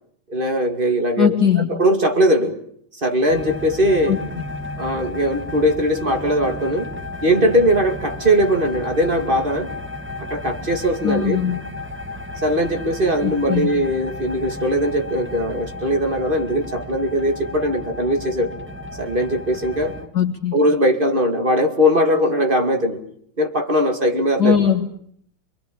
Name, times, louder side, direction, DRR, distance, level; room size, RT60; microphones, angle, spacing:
voice 1, 0.3-1.3 1.7-2.6 3.0-4.2 4.8-6.9 7.2-9.7 10.2-11.4 12.4-18.5 19.0-19.9 20.5-23.0 23.4-24.5, equal, 25° right, 5 dB, 2.6 m, -20 dB
voice 2, 1.2-1.7 4.1-4.2 11.0-11.6 13.2-13.7 20.1-20.5 24.4-24.9, left 8 dB, 55° left, 3 dB, 2.1 m, -19 dB
sound 1, 3.3-20.1, left 1 dB, 5° right, 1.6 m, -33 dB
27.0 x 22.0 x 8.6 m, 0.67 s
omnidirectional pair, 2.2 m